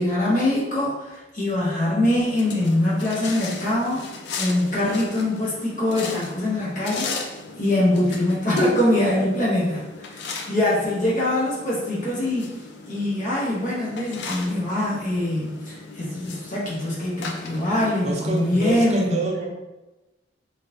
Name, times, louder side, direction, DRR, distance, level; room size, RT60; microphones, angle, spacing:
voice 1, 0.0-4.0 4.3-7.1 7.6-12.5 12.9-19.2, left 1 dB, 45° left, -6 dB, 0.8 m, -23 dB
sound 1, 2.2-18.8, left 4 dB, 65° left, 0.4 m, -38 dB
voice 2, 18.0-19.5, right 2 dB, 35° right, -1 dB, 0.6 m, -27 dB
3.5 x 2.7 x 2.6 m, 1.1 s
head